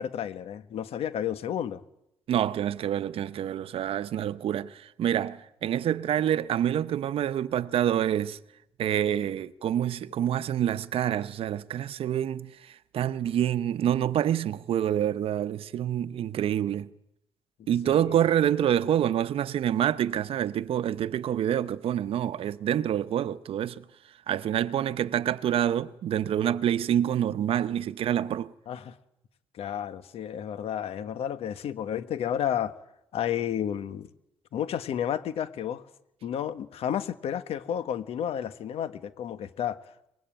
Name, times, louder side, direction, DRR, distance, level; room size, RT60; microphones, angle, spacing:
voice 1, 0.0-1.8 17.8-18.2 28.7-29.0 29.5-32.8 33.1-34.1 34.5-35.8 36.2-39.8, left 9 dB, 85° left, 1.4 m, -31 dB
voice 2, 2.3-8.4 8.8-16.9 17.7-23.8 24.3-28.5, right 10 dB, 70° right, 0.9 m, -27 dB
24.0 x 21.0 x 9.0 m
wide cardioid pair, 155°, 10 cm